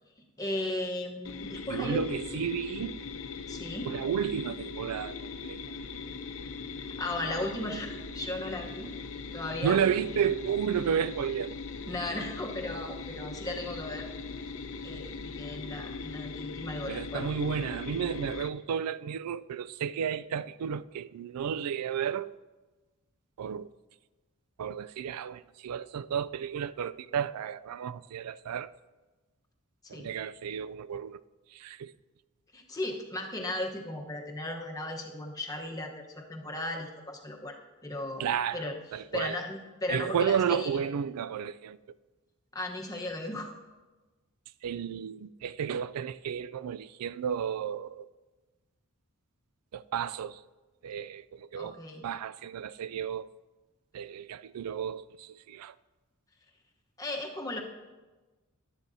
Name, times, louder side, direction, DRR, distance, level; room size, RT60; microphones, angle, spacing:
voice 1, 0.4-2.0 3.5-3.9 7.0-8.9 9.3-9.8 10.1-10.3 11.9-14.1 14.8-17.2 29.9-30.1 32.5-37.6 37.8-38.7 39.1-40.8 42.5-43.5 51.6-52.0 57.0-57.6, left 1 dB, 15° left, 1.0 m, -36 dB
sound 1, 1.2-18.5, left 4 dB, 65° left, 0.7 m, -40 dB
voice 2, 1.7-3.0 3.8-5.6 9.6-11.6 12.0-12.1 16.9-22.4 23.4-23.7 24.6-28.7 29.9-31.2 31.5-31.9 38.2-39.4 39.9-41.8 44.6-48.1 49.7-50.4 50.8-53.3 53.9-55.7, right 8 dB, 85° right, 0.4 m, -32 dB
16.0 x 11.5 x 2.7 m
head